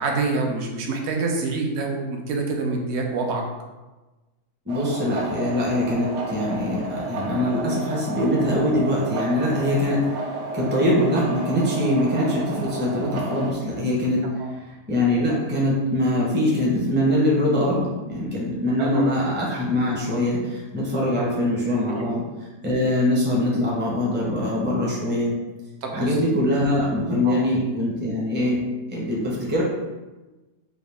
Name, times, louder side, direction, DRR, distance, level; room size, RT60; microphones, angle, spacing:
voice 1, 0.0-3.4 14.4-14.5 18.8-19.1 21.9-22.0 25.8-26.2 27.2-27.4, right 3 dB, 65° right, 1 dB, 0.7 m, -26 dB
voice 2, 4.7-10.2 10.5-14.3 14.6-22.2 22.6-25.3 25.9-28.6 28.9-29.6, left 1 dB, 10° right, -5 dB, 0.5 m, -23 dB
sound 1, 4.7-13.5, right 3 dB, 85° right, 1.3 m, -32 dB
4.9 x 2.5 x 3.4 m, 1.2 s
omnidirectional pair, 1.8 m